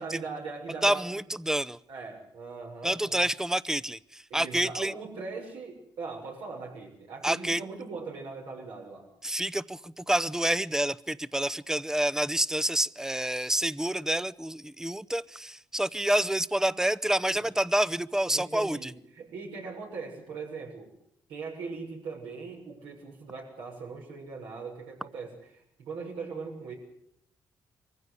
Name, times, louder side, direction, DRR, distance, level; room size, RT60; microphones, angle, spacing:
voice 1, 0.0-1.0 1.9-3.2 4.3-9.1 16.7-17.5 18.3-20.9 21.3-26.7, right 4 dB, 90° right, -1 dB, 6.7 m, -40 dB
voice 2, 0.8-1.8 2.8-4.9 7.2-7.6 9.2-18.9, right 1 dB, 5° right, 16 dB, 0.7 m, -28 dB
23.5 x 15.0 x 8.2 m, 0.71 s
supercardioid pair, 65°, 8 cm